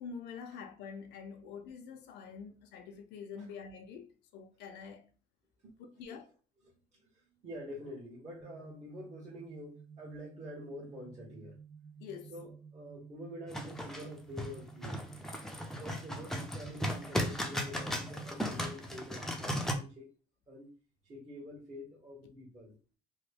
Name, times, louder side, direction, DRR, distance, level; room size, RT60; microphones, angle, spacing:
voice 1, 0.0-5.1 6.0-6.3 12.0-12.4, left 6 dB, 80° left, 0.6 m, -46 dB
voice 2, 5.6-6.2 6.6-11.6 12.3-15.0 15.7-20.1 20.5-20.8 21.0-22.8, equal, 40° right, 1.3 m, -47 dB
sound 1, 8.4-18.4, right 6 dB, 90° right, 0.9 m, -53 dB
sound 2, 13.5-19.7, equal, 5° left, 0.5 m, -36 dB
3.1 x 2.2 x 3.3 m
cardioid pair, 110°, 17 cm